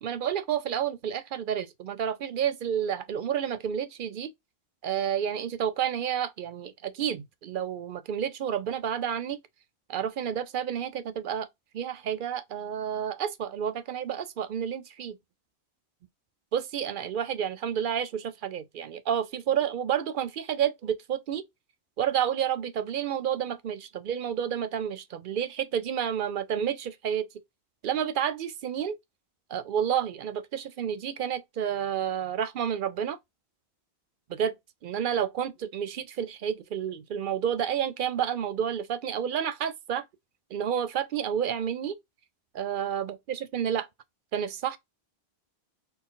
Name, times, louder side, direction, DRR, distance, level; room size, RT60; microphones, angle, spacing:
voice 1, 0.0-4.3 4.8-9.4 9.9-11.5 11.7-15.2 16.5-21.4 22.0-27.3 27.8-28.9 29.5-33.2 34.3-34.6 34.8-40.0 40.5-42.0 42.5-43.9 44.3-44.8, right 9 dB, 60° right, 0.6 m, -30 dB
4.2 x 2.1 x 3.7 m
omnidirectional pair, 1.1 m